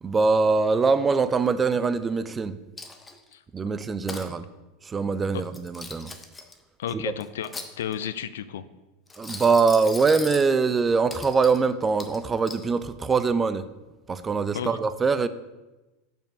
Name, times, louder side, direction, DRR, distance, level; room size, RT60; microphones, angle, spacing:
voice 1, 0.0-2.6 3.5-4.4 4.8-6.1 6.9-7.0 9.2-13.7 14.1-15.3, right 4 dB, 20° right, 0.4 m, -23 dB
Coin (dropping), 2.8-3.3 3.8-4.3 5.4-6.5 7.2-8.1 9.1-10.5 11.1-11.6 12.0-12.6, left 3 dB, 15° left, 0.8 m, -39 dB
voice 2, 6.8-7.5 7.8-8.7 14.5-14.8, left 9 dB, 80° left, 0.4 m, -32 dB
5.4 x 4.5 x 6.1 m
hypercardioid pair, 100°, 0 cm